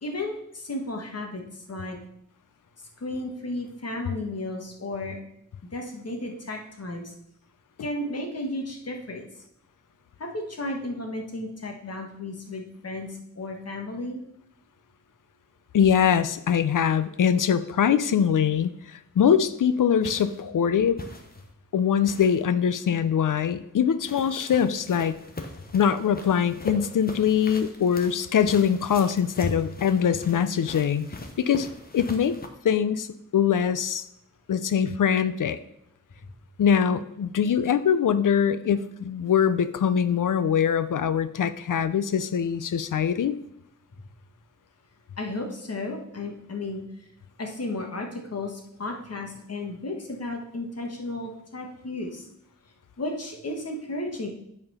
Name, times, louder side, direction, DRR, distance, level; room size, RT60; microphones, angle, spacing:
voice 1, 0.0-2.0 3.0-5.2 5.7-7.1 7.8-9.2 10.2-14.2 29.4-29.5 45.2-46.8 47.4-52.3 53.0-54.3, left 2 dB, 50° left, 2 dB, 1.5 m, -33 dB
voice 2, 15.7-18.7 19.2-21.0 21.7-25.2 25.7-31.1 31.4-31.7 31.9-32.3 32.6-33.1 33.3-34.0 34.5-35.6 36.6-43.4, left 8 dB, 70° left, 13 dB, 0.6 m, -23 dB
sound 1, 20.0-20.4 21.0-21.5 22.0-22.4 24.0-32.5, left 2 dB, 30° left, 1.0 m, -41 dB
8.7 x 4.4 x 5.5 m, 0.76 s
wide cardioid pair, 120°, 32 cm